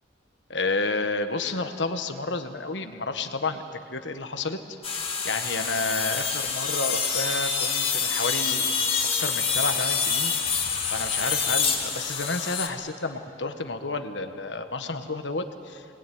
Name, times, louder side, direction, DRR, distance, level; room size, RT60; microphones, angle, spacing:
voice 1, 0.5-4.6 4.9-8.7 9.2-10.3 10.9-15.9, left 3 dB, 75° left, 8 dB, 1.5 m, -30 dB
sound 1, 4.8-12.7, left 6 dB, 30° left, 2.1 m, -26 dB
24.0 x 20.5 x 9.5 m, 2.7 s
head